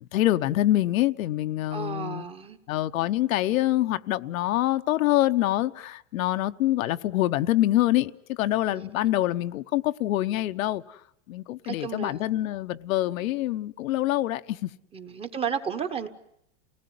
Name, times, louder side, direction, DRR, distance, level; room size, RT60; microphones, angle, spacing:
voice 1, 0.1-2.3 2.7-11.0 11.3-14.7, left 15 dB, 85° left, 1.0 m, -25 dB
voice 2, 1.7-2.6 8.7-8.9 11.6-12.2 14.9-16.1, right 7 dB, 15° right, 1.0 m, -33 dB
29.0 x 19.0 x 9.4 m
supercardioid pair, 165°, 40 cm